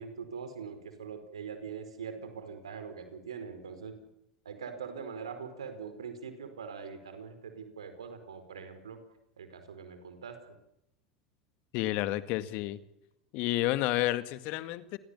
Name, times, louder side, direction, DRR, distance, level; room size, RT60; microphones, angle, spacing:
voice 1, 0.0-4.0 4.4-9.0 9.4-10.4, right 6 dB, 80° right, 9 dB, 4.8 m, -42 dB
voice 2, 11.7-12.8 13.3-15.0, left 16 dB, 55° left, 13 dB, 1.9 m, -30 dB
29.0 x 22.5 x 7.2 m, 0.85 s
hypercardioid pair, 80°, 3 cm